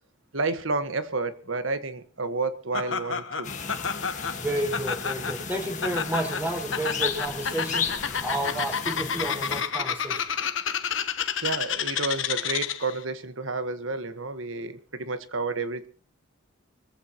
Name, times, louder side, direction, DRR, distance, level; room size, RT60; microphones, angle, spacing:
voice 1, 0.3-3.5 11.4-15.9, right 3 dB, 80° right, 10 dB, 1.5 m, -30 dB
Laughter, 2.7-13.0, left 7 dB, 70° left, 1.2 m, -30 dB
sound 1, 3.4-9.6, left 6 dB, 40° left, 1.8 m, -34 dB
voice 2, 4.3-10.3, right 1 dB, 10° right, 1 dB, 6.0 m, -31 dB
25.0 x 15.0 x 3.1 m, 0.43 s
head